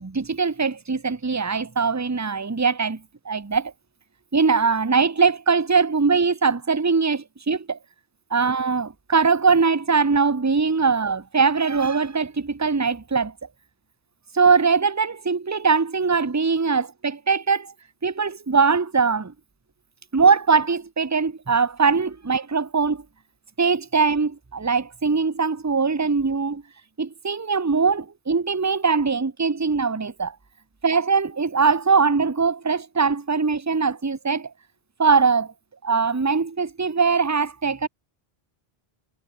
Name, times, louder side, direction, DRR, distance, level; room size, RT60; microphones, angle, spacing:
voice 1, 0.0-3.0 3.2-3.7 4.3-7.8 8.3-13.3 14.3-17.7 18.0-19.3 20.1-23.0 23.6-26.6 27.0-30.3 30.8-34.5 35.0-35.5 35.8-37.9, right 5 dB, 20° right, 0.8 m, -21 dB
omnidirectional pair, 1.0 m